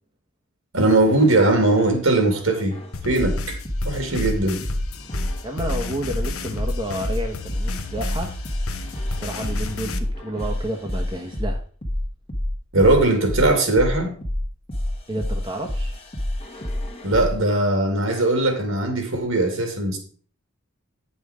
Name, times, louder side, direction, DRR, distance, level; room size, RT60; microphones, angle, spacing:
voice 1, 0.7-2.8 3.0-3.6 3.8-4.6 12.7-14.1 17.0-20.0, right 2 dB, 70° right, 2.4 m, -19 dB
sound 1, 1.0-2.0 2.7-17.4 18.1-18.4, left 1 dB, 30° left, 1.3 m, -28 dB
sound 2, 2.9-10.0, left 3 dB, 90° left, 1.0 m, -33 dB
voice 2, 5.4-8.4 9.1-11.6 15.1-16.0, right 1 dB, 20° right, 1.0 m, -30 dB
9.8 x 5.5 x 4.9 m
head